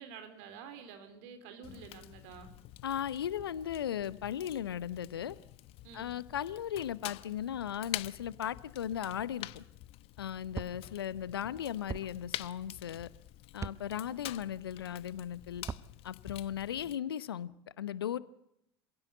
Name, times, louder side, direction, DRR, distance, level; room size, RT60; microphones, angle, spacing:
voice 1, 0.0-2.5 5.8-6.1, right 6 dB, 60° right, 9 dB, 3.5 m, -49 dB
Fire, 1.6-17.0, left 16 dB, 50° left, 0.9 m, -47 dB
voice 2, 2.8-5.4 5.9-9.6 10.2-13.1 13.5-15.6 16.0-17.5 17.8-18.2, left 10 dB, 80° left, 18 dB, 0.9 m, -37 dB
sound 1, 10.5-10.8 11.9-12.1 13.6-13.8 15.6-15.9, right 6 dB, 25° right, 0.9 m, -39 dB
26.5 x 16.5 x 8.2 m, 0.79 s
figure-of-eight pair, 70°, 13 cm